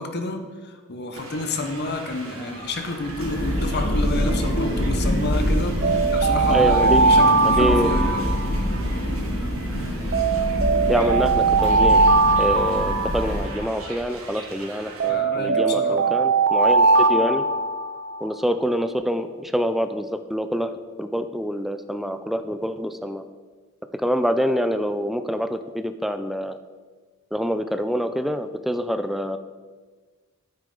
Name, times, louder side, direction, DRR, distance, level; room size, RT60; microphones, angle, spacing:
voice 1, 0.0-8.2 15.1-16.1, left 2 dB, 50° left, 6 dB, 1.0 m, -29 dB
sound 1, 1.1-15.1, right 2 dB, 75° right, 2.3 m, -41 dB
Thunder, 2.8-13.9, equal, 90° left, 1.7 m, -25 dB
sound 2, 5.8-9.0 10.1-13.9 15.0-18.2, right 4 dB, 50° right, 0.5 m, -20 dB
voice 2, 6.5-7.0 7.4-8.0 10.9-12.0 12.4-17.5 18.2-20.7 21.0-23.2 23.9-26.6 27.3-29.4, equal, ahead, 9 dB, 0.4 m, -26 dB
9.6 x 8.7 x 3.9 m, 1.4 s
head